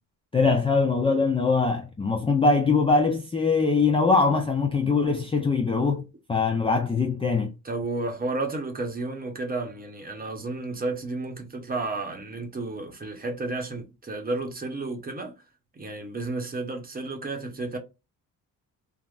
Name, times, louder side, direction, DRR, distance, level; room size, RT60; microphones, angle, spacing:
voice 1, 0.3-7.5, left 4 dB, 15° left, 0.4 m, -22 dB
voice 2, 7.6-15.3 15.7-17.8, right 2 dB, 25° right, 0.8 m, -32 dB
3.5 x 2.0 x 2.3 m
cardioid pair, 115°, 35 cm